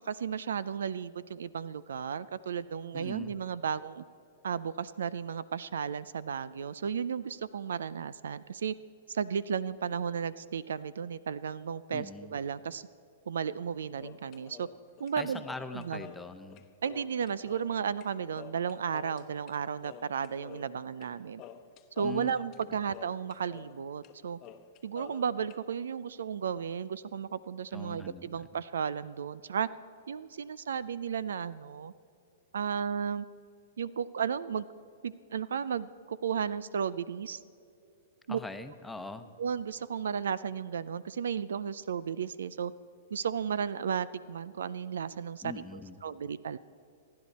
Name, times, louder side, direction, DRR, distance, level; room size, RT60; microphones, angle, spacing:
voice 1, 0.0-4.0 4.4-8.7 9.1-12.9 13.3-14.7 15.0-15.4 15.7-16.0 16.8-21.4 22.0-24.4 24.8-29.7 30.1-31.9 32.5-33.3 33.8-34.7 35.0-37.4 38.3-38.4 39.4-42.7 43.1-46.6, right 7 dB, 75° right, 18 dB, 0.5 m, -34 dB
voice 2, 2.9-3.4 11.9-12.4 15.2-16.6 22.0-22.3 27.7-28.5 38.3-39.3 45.4-46.0, left 3 dB, 5° left, 8 dB, 1.0 m, -42 dB
sound 1, 14.0-18.1 18.3-19.6 19.8-21.1 21.4-23.8 24.0-24.1 24.4-25.6, left 9 dB, 35° left, 0.9 m, -50 dB
26.5 x 10.5 x 4.2 m, 2.5 s
hypercardioid pair, 120°, 0 cm